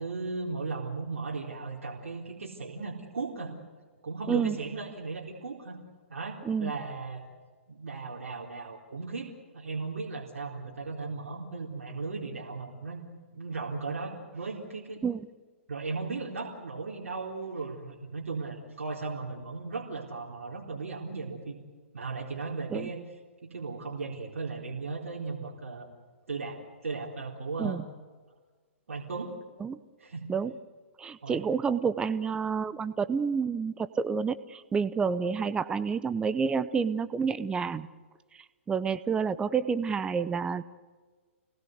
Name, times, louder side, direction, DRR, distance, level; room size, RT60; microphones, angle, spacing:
voice 1, 0.0-3.5 4.0-5.8 6.1-7.2 7.7-13.1 13.3-15.0 15.7-21.6 21.9-23.0 23.4-25.9 26.3-27.8 28.9-29.4 30.0-30.2 31.2-31.4, right 4 dB, 85° right, -3 dB, 4.1 m, -36 dB
voice 2, 31.0-37.9 38.3-40.6, right 6 dB, 10° right, 14 dB, 0.7 m, -29 dB
29.0 x 19.5 x 8.1 m, 1.4 s
hypercardioid pair, 135°, 7 cm